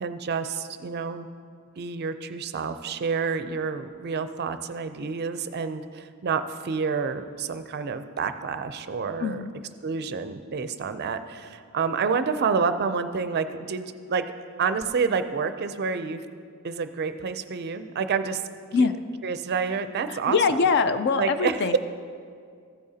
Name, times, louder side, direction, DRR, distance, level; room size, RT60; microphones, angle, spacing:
voice 1, 0.0-1.3 1.8-9.4 9.8-14.3 14.6-16.2 16.6-18.4 19.2-20.4 21.2-21.8, right 5 dB, 50° right, 10 dB, 0.4 m, -28 dB
voice 2, 9.2-9.5 18.7-18.9 20.1-21.8, left 4 dB, 50° left, 11 dB, 0.4 m, -23 dB
14.5 x 8.6 x 2.8 m, 2.2 s
head